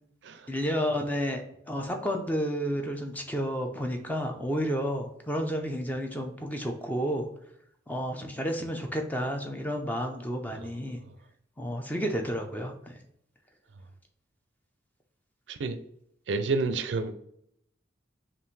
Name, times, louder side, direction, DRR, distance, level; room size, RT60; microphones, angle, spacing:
voice 1, 0.5-7.3 7.9-11.0 11.6-12.9, equal, 10° left, 3 dB, 0.5 m, -31 dB
voice 2, 16.3-17.1, right 4 dB, 70° right, 10 dB, 0.4 m, -29 dB
5.4 x 2.5 x 3.2 m, 0.71 s
head